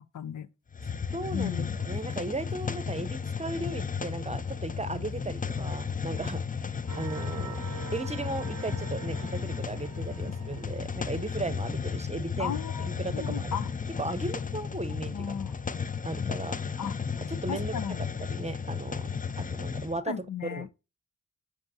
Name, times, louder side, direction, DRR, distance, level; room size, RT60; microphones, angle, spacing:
voice 1, 0.1-0.5 1.3-1.8 12.4-13.7 14.9-15.5 16.8-17.0 17.5-18.1 20.0-20.7, left 8 dB, 80° left, 0.6 m, -35 dB
Hiss, 0.7-20.0, left 6 dB, 25° left, 0.5 m, -34 dB
voice 2, 1.1-6.4 7.0-7.6 7.9-12.5 12.8-13.6 14.0-15.1 16.0-16.6 17.3-17.7 18.3-19.1 19.4-20.1 20.5-20.7, right 2 dB, 20° right, 0.7 m, -36 dB
sound 1, 6.9-11.6 12.1-12.2, right 9 dB, 75° right, 0.6 m, -45 dB
7.7 x 4.9 x 2.8 m
cardioid pair, 50°, 31 cm